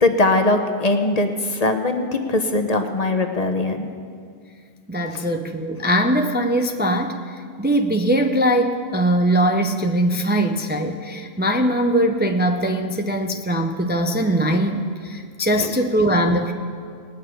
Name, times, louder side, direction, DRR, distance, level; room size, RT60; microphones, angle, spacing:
voice 1, 0.0-3.9 5.1-5.3 15.6-15.7, left 2 dB, 40° left, 6 dB, 1.0 m, -21 dB
voice 2, 4.9-7.2 7.6-16.5, right 1 dB, 10° right, 4 dB, 0.6 m, -21 dB
19.0 x 6.4 x 9.2 m, 2.1 s
omnidirectional pair, 1.0 m